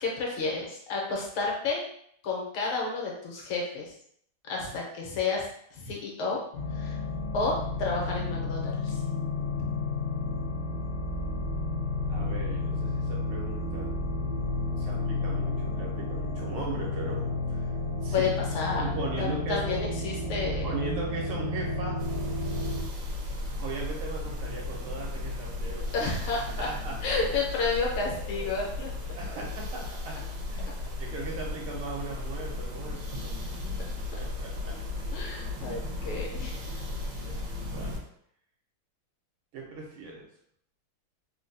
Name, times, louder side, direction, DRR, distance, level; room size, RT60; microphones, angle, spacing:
voice 1, 0.0-1.8 2.2-3.9 4.5-6.4 6.7-7.0 7.3-9.0 18.1-18.8 19.2-20.7 25.9-26.7 27.0-28.9 35.1-36.8, left 4 dB, 75° left, -2 dB, 1.6 m, -31 dB
sound 1, 6.5-22.8, left 2 dB, 55° left, 0.8 m, -31 dB
voice 2, 12.1-14.1 14.8-17.8 18.0-18.3 18.8-19.9 20.5-22.0 23.6-25.9 26.6-27.2 28.2-28.5 29.1-30.2 30.5-30.7 31.0-33.7 34.1-35.1 35.7-35.9 37.2-37.4 37.7-38.1 39.5-40.3, right 3 dB, 80° right, -2 dB, 1.7 m, -38 dB
sound 2, 22.0-38.0, left 2 dB, 65° right, 1.1 m, -35 dB
4.0 x 2.3 x 2.6 m, 0.68 s
omnidirectional pair, 2.4 m